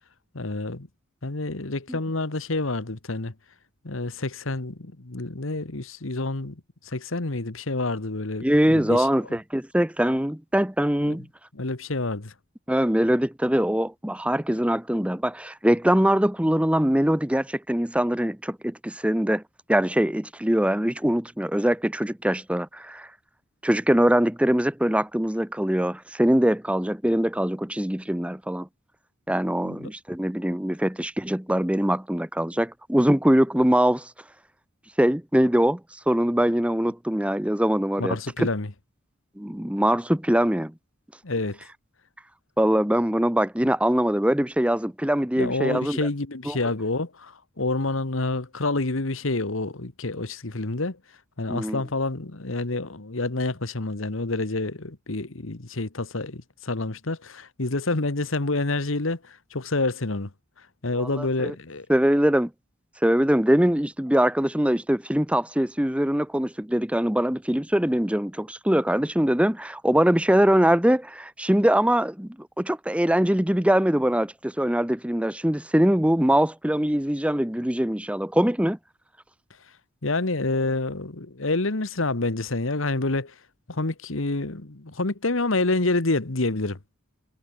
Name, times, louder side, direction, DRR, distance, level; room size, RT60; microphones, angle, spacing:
voice 1, 0.3-0.9 1.2-3.3 3.8-6.6 6.8-9.1 11.0-11.1 11.5-12.3 29.6-29.9 38.0-38.7 41.2-41.6 45.4-51.0 51.4-60.3 60.8-61.9 80.0-83.3 83.7-86.8, left 2 dB, 70° left, 1.5 m, -28 dB
voice 2, 8.4-11.3 12.7-19.4 19.7-23.1 23.6-28.7 29.3-34.1 35.0-35.8 36.1-38.5 39.4-40.7 42.6-46.0 46.5-46.6 51.5-51.8 61.0-61.5 61.9-62.5 63.0-78.8, equal, 5° right, 1.0 m, -22 dB
head